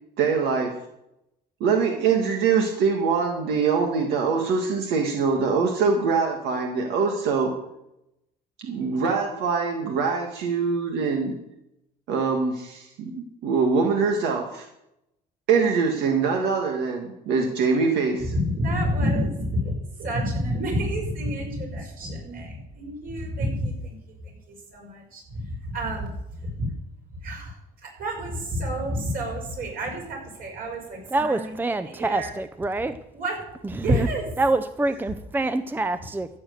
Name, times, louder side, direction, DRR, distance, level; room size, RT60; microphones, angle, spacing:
voice 1, 0.2-0.7 1.6-7.5 8.6-11.3 12.1-14.6 15.5-18.3, right 5 dB, 80° right, 2 dB, 1.8 m, -23 dB
voice 2, 18.2-24.0 24.2-26.7 27.2-32.3 33.1-33.4 33.8-34.3, equal, 60° right, 1 dB, 5.7 m, -29 dB
voice 3, 31.1-33.0 33.7-34.1 34.4-36.3, right 2 dB, 10° right, 11 dB, 0.6 m, -26 dB
15.0 x 7.5 x 6.6 m, 0.84 s
cardioid pair, 110°, 17 cm